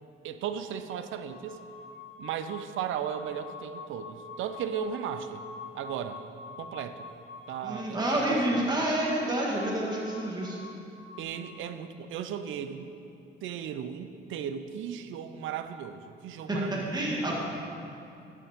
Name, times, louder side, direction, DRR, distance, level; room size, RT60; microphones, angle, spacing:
voice 1, 0.2-1.6 2.2-5.4 5.7-6.2 6.6-7.0 7.5-8.6 11.2-12.9 13.4-16.9, right 8 dB, 80° right, 10 dB, 0.6 m, -36 dB
sound 1, 1.3-11.4, left 4 dB, 60° left, 2.1 m, -47 dB
voice 2, 7.6-10.6 16.5-17.4, right 1 dB, 20° right, -3 dB, 1.7 m, -28 dB
11.0 x 8.4 x 3.6 m, 2.7 s
cardioid pair, 90°, 20 cm